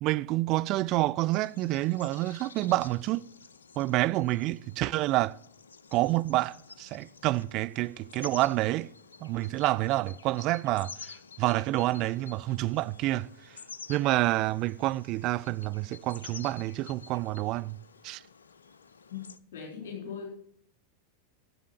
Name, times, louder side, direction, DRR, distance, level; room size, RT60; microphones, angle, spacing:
voice 1, 0.0-3.3 3.8-5.4 5.9-8.9 9.2-13.6 13.9-17.8 18.0-18.2, right 17 dB, 40° right, 0.4 m, -28 dB
sound 1, 1.3-19.4, left 5 dB, 70° left, 0.4 m, -50 dB
voice 2, 19.1-20.3, left 7 dB, 55° left, 4.2 m, -40 dB
10.5 x 7.8 x 7.3 m
figure-of-eight pair, 90°, 0 cm